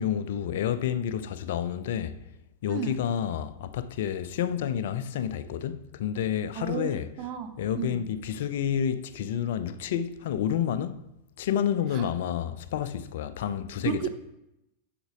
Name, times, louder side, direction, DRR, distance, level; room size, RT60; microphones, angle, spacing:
voice 1, 0.0-2.2 2.6-7.1 7.6-11.1 11.4-14.1, left 9 dB, 55° left, 0.5 m, -29 dB
voice 2, 2.7-3.0 6.6-8.0 11.9-12.1 13.8-14.1, right 8 dB, 40° right, 0.7 m, -33 dB
7.9 x 5.9 x 4.9 m
figure-of-eight pair, 90°, 0 cm